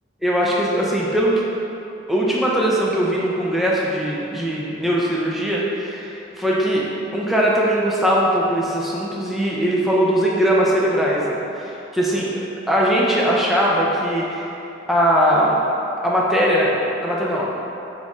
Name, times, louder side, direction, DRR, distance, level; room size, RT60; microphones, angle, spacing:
voice 1, 0.2-1.4 2.1-6.9 7.1-14.6 14.9-15.6 16.0-17.4, equal, ahead, -5 dB, 0.5 m, -20 dB
5.5 x 3.9 x 2.4 m, 2.9 s
head